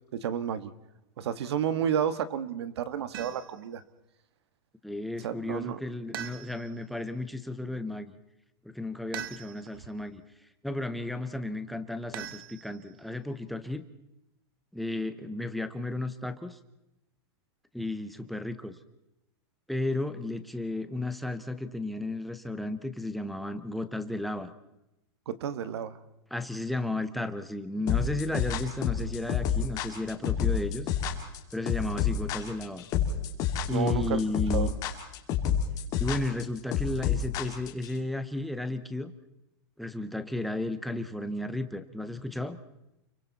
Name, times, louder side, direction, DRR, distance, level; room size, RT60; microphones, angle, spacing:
voice 1, 0.1-0.7 1.2-3.8 5.2-5.8 25.3-26.0 33.7-34.2 34.5-34.7, right 9 dB, 80° right, 13 dB, 1.7 m, -31 dB
sound 1, 3.1-3.7 6.1-6.9 9.1-9.8 12.1-13.0, right 10 dB, 55° right, 1.4 m, -41 dB
voice 2, 4.8-8.1 8.6-10.2 10.6-13.8 14.7-16.6 17.7-18.7 19.7-24.5 26.3-30.9 31.5-32.8 33.7-34.7 36.0-39.1 39.8-42.6, left 2 dB, ahead, 9 dB, 0.8 m, -33 dB
sound 2, 27.9-37.9, left 8 dB, 25° left, 2.3 m, -28 dB
30.0 x 23.5 x 4.2 m, 0.88 s
supercardioid pair, 175°, 14 cm